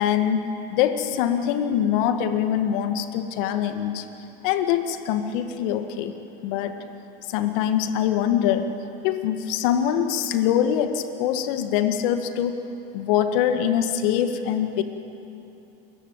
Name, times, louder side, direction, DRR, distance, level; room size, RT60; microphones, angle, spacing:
voice 1, 0.0-4.1 4.4-6.1 6.4-6.8 7.3-8.7 9.0-12.6 12.9-14.8, left 9 dB, 60° left, 8 dB, 2.0 m, -23 dB
26.5 x 22.5 x 9.1 m, 2.9 s
hypercardioid pair, 95°, 29 cm